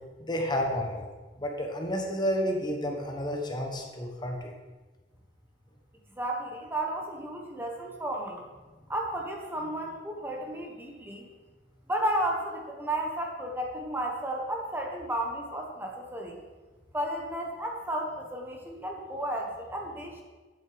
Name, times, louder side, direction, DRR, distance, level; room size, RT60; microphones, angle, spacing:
voice 1, 0.2-1.1 1.4-4.5, equal, 25° left, 2 dB, 1.4 m, -31 dB
voice 2, 6.1-8.5 8.9-11.3 11.9-16.4 16.9-20.2, right 1 dB, 10° right, 1 dB, 1.3 m, -33 dB
10.5 x 8.9 x 5.2 m, 1.3 s
head